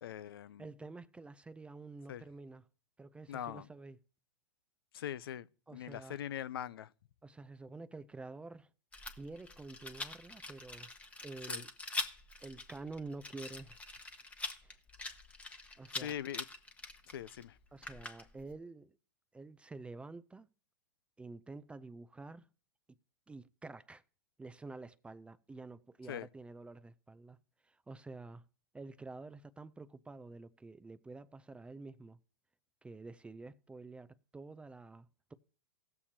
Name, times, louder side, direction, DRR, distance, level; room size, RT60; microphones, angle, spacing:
voice 1, 0.0-0.7 2.1-2.2 3.3-3.7 4.9-6.9 11.5-11.6 15.9-16.4 17.1-17.6 26.1-26.3, left 10 dB, 70° left, 0.5 m, -42 dB
voice 2, 0.6-2.6 3.0-4.0 5.7-6.2 7.2-8.7 9.2-10.9 11.2-11.7 12.4-13.8 14.6-14.8 15.8-16.1 17.7-19.0 19.3-20.5 21.2-22.5 23.3-24.0 24.4-27.4 27.6-28.5 28.7-32.2 32.8-35.3, right 3 dB, 10° right, 0.4 m, -49 dB
Rattle, 8.9-18.5, left 3 dB, 10° left, 1.0 m, -44 dB
18.0 x 7.1 x 2.8 m
hypercardioid pair, 110°, 13 cm